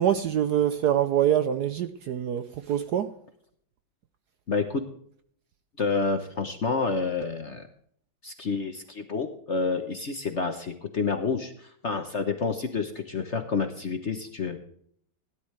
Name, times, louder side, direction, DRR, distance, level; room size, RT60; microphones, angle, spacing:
voice 1, 0.0-3.1, right 10 dB, 65° right, 1.0 m, -25 dB
voice 2, 4.5-4.8 5.8-7.6 8.2-14.6, left 4 dB, 45° left, 1.0 m, -29 dB
16.5 x 11.0 x 3.3 m
omnidirectional pair, 2.2 m